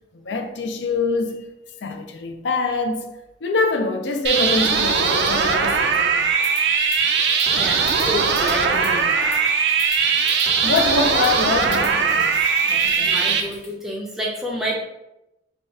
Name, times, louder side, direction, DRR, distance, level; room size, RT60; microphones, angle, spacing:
voice 1, 0.1-1.5 1.8-3.1 3.4-6.3 10.6-12.4 12.6-13.4, left 3 dB, 70° left, 0.5 m, -24 dB
sound 1, 4.2-13.4, right 5 dB, 60° right, 0.4 m, -20 dB
sound 2, 6.4-7.0 7.3-13.7, left 3 dB, 30° left, 0.8 m, -41 dB
voice 2, 7.6-9.4 13.0-14.8, equal, ahead, 0.5 m, -29 dB
3.3 x 2.4 x 4.1 m
head